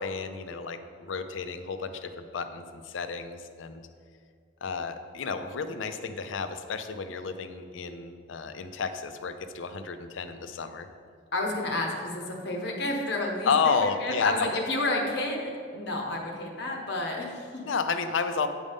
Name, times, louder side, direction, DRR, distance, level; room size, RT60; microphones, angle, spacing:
voice 1, 0.0-3.9 4.6-10.9 13.4-14.5 17.7-18.5, left 5 dB, 85° left, 9 dB, 0.5 m, -31 dB
voice 2, 11.3-17.6, left 2 dB, 60° left, 0 dB, 1.1 m, -31 dB
9.1 x 5.1 x 3.6 m, 2.1 s
head